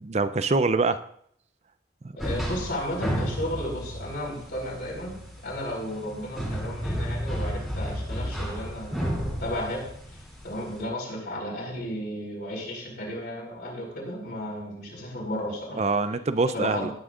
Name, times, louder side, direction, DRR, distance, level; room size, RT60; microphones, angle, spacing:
voice 1, 0.0-1.0 15.8-16.9, right 3 dB, 35° right, 12 dB, 0.5 m, -24 dB
voice 2, 2.2-9.9 10.4-15.8 16.5-16.9, equal, 65° left, -7 dB, 3.9 m, -34 dB
sound 1, 2.2-10.8, equal, ahead, 2.7 m, -33 dB
18.5 x 9.9 x 2.5 m, 0.64 s
head